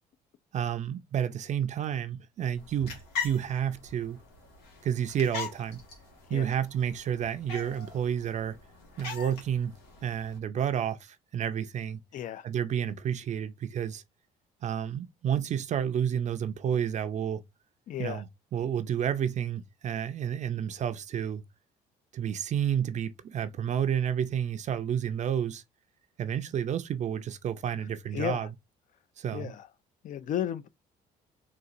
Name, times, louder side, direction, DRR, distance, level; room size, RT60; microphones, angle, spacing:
voice 1, 0.5-4.2 4.8-5.8 6.3-8.6 9.0-9.8 10.0-12.0 12.4-14.0 14.6-17.4 18.0-18.3 18.5-21.4 22.1-25.6 26.2-28.5 29.2-29.5, right 9 dB, 45° right, 0.4 m, -30 dB
sound 1, 2.6-10.4, left 6 dB, 85° left, 1.5 m, -41 dB
voice 2, 12.1-12.5 17.9-18.2 28.1-28.5 29.3-29.7 30.0-30.7, left 10 dB, 50° left, 0.4 m, -34 dB
4.0 x 2.4 x 2.5 m
cardioid pair, 110°, 17 cm